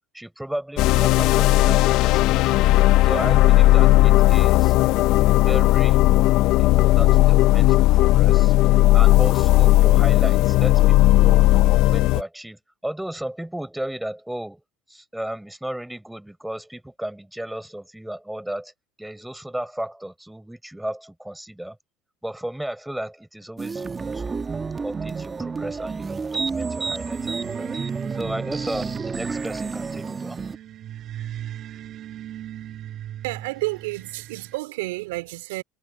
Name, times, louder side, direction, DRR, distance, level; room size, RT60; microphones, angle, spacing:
voice 1, 0.1-2.6 3.0-4.8 5.5-6.0 6.6-8.5 8.9-11.5 11.9-14.6 14.9-18.7 19.0-21.8 22.2-24.4 24.8-27.7 28.1-30.4, right 1 dB, 5° right, 5.8 m, -34 dB
sound 1, 0.8-12.2, left 17 dB, 65° left, 0.5 m, -16 dB
sound 2, 23.6-30.6, right 4 dB, 25° right, 1.7 m, -30 dB
sound 3, 26.9-34.6, right 11 dB, 50° right, 2.9 m, -39 dB
voice 2, 33.2-35.6, right 21 dB, 85° right, 3.7 m, -30 dB
supercardioid pair, 90°, 0 cm